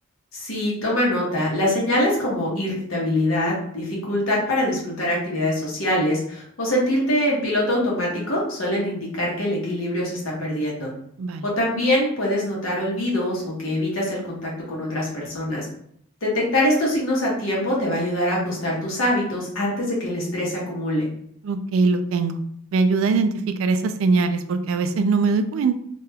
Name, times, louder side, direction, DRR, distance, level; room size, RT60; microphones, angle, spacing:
voice 1, 0.3-10.9 11.4-15.7 16.2-21.1, left 1 dB, 75° left, -4 dB, 1.1 m, -24 dB
voice 2, 21.4-22.4 22.7-23.3 23.6-25.7, right 4 dB, 70° right, 9 dB, 0.3 m, -21 dB
2.8 x 2.2 x 3.3 m, 0.69 s
head